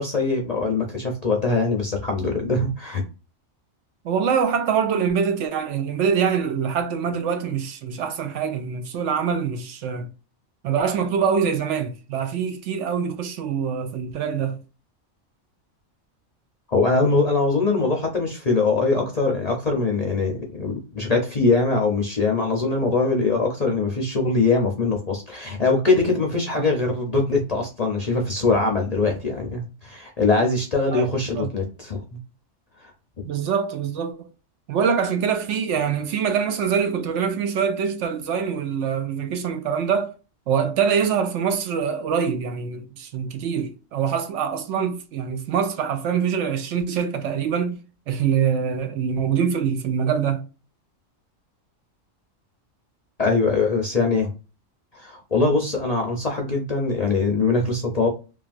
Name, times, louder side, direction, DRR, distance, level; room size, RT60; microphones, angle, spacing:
voice 1, 0.0-3.0 16.7-32.0 32.8-32.9 53.2-54.3 54.9-58.1, left 3 dB, 45° left, 0.5 m, -22 dB
voice 2, 4.0-10.1 10.6-14.6 26.5-26.7 30.9-31.1 31.4-31.5 33.2-34.3 34.7-40.1 40.5-47.8 48.1-50.4, right 7 dB, 70° right, 0.8 m, -24 dB
3.2 x 2.4 x 2.4 m
omnidirectional pair, 1.4 m